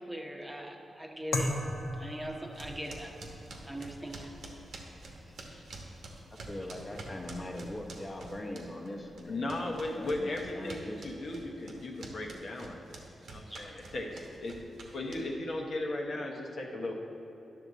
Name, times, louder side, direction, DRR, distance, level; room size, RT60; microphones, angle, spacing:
voice 1, 0.0-1.5 2.0-3.1 3.7-4.3 6.7-6.8 13.5-13.6, right 1 dB, 10° right, 0 dB, 0.9 m, -40 dB
sound 1, 1.3-10.2, left 1 dB, 85° left, 1.0 m, -42 dB
sound 2, 2.5-8.9 9.2-15.5, right 2 dB, 85° right, 1.1 m, -47 dB
voice 2, 6.3-9.5 9.9-11.0, left 1 dB, 30° left, 0 dB, 1.2 m, -41 dB
voice 3, 9.3-14.5 14.9-17.0, left 2 dB, 65° left, -1 dB, 1.1 m, -37 dB
10.5 x 6.4 x 4.0 m, 3.0 s
cardioid pair, 80°, 0 cm